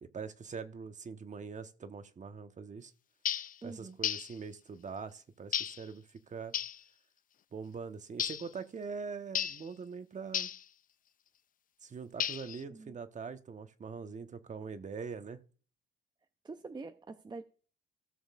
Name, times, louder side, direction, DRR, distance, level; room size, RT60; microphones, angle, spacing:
voice 1, 0.0-2.9 3.6-6.5 7.5-10.5 11.8-15.4, right 5 dB, 40° right, 1.0 m, -43 dB
sound 1, 3.2-3.5 4.0-4.3 5.5-5.8 6.5-6.8 8.2-8.5 9.3-9.6 10.3-10.6 12.2-12.6, left 9 dB, 45° left, 0.4 m, -34 dB
voice 2, 3.6-4.0 12.7-13.0 16.4-17.4, right 3 dB, 20° right, 0.6 m, -45 dB
16.5 x 6.4 x 2.4 m
cardioid pair, 90°, 20 cm